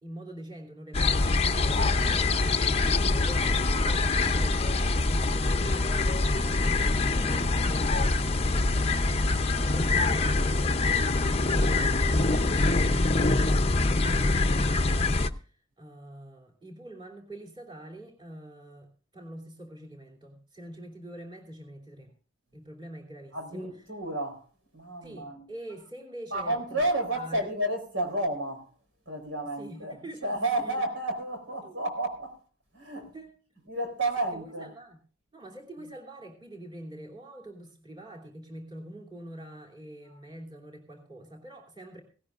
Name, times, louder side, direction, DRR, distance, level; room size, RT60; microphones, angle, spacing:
voice 1, 0.0-7.5 8.1-9.0 9.6-12.6 13.0-22.1 22.5-23.9 25.0-26.9 27.1-27.6 29.6-30.4 30.6-30.8 31.6-31.9 33.1-33.3 34.3-35.0 35.3-42.0, right 1 dB, 25° right, 3.0 m, -45 dB
sound 1, 0.9-15.3, left 3 dB, 30° left, 0.7 m, -24 dB
voice 2, 23.3-24.4 24.7-25.5 26.3-28.7 29.1-29.9 30.2-32.4 32.7-33.1 33.7-34.7, right 1 dB, 80° right, 4.3 m, -31 dB
17.5 x 17.5 x 2.5 m
head